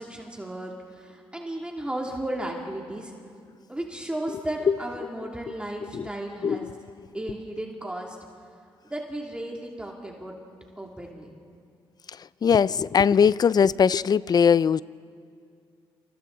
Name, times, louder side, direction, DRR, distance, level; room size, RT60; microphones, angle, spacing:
voice 1, 0.0-3.1 3.7-6.6 7.1-8.2 8.8-10.3 10.8-11.3, right 1 dB, 10° right, 2.8 m, -34 dB
voice 2, 6.4-6.8 12.1-14.8, left 7 dB, 45° left, 0.4 m, -21 dB
28.5 x 27.5 x 4.0 m
cardioid pair, 75°, 10 cm